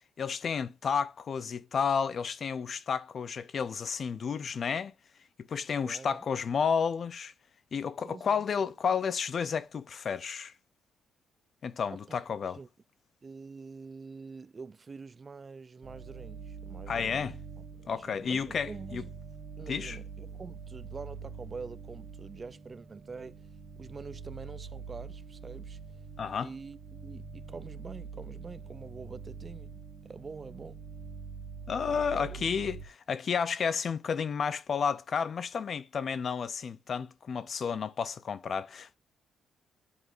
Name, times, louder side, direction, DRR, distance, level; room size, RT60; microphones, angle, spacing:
voice 1, 0.2-4.9 5.5-7.3 7.7-10.5 11.6-12.6 16.9-17.4 17.9-19.0 19.7-20.0 26.2-26.5 31.7-39.0, left 6 dB, 50° left, 0.5 m, -31 dB
voice 2, 5.9-6.2 8.0-8.4 11.9-12.2 12.5-12.7 13.2-17.3 17.6-19.1 19.6-23.4 23.8-25.8 26.4-30.8 31.9-32.5, right 4 dB, 30° right, 0.4 m, -46 dB
sound 1, 15.8-32.8, right 5 dB, 55° right, 1.6 m, -45 dB
11.0 x 4.7 x 2.5 m
cardioid pair, 90°, 0 cm